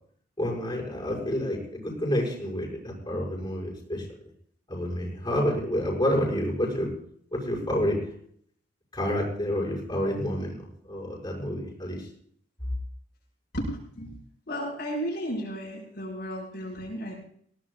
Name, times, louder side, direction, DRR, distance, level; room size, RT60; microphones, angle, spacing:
voice 1, 0.4-4.0 4.7-6.9 7.3-8.0 8.9-12.1, equal, 25° left, -4 dB, 6.5 m, -29 dB
voice 2, 13.5-14.1 14.5-17.2, equal, 60° left, -5 dB, 6.0 m, -33 dB
21.0 x 17.5 x 2.5 m, 0.62 s
head